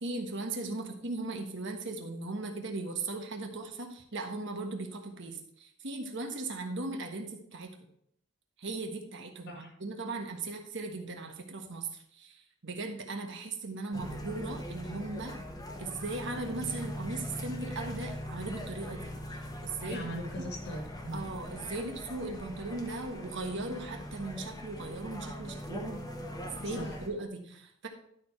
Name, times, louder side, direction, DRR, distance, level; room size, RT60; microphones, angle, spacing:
voice 1, 0.0-7.7 8.6-15.4 15.8-20.0 21.1-26.0 26.4-27.9, right 3 dB, 65° right, 4 dB, 1.3 m, -38 dB
sound 1, 13.9-27.1, equal, 20° left, 1.1 m, -41 dB
voice 2, 19.8-21.2 26.7-27.0, equal, 55° left, 2 dB, 2.1 m, -39 dB
11.5 x 4.5 x 4.4 m, 0.68 s
head